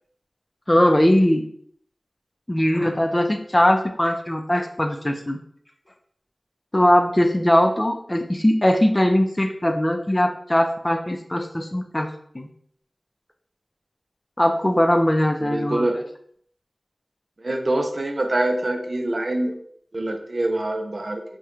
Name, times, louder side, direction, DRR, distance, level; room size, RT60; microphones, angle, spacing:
voice 1, 0.7-1.5 2.5-5.4 6.7-12.5 14.4-15.8, left 1 dB, 25° left, 5 dB, 0.4 m, -20 dB
voice 2, 15.4-16.0 17.4-19.6 19.9-21.2, right 1 dB, 60° right, 5 dB, 0.4 m, -25 dB
2.9 x 2.2 x 3.6 m, 0.63 s
wide cardioid pair, 40°, 0 cm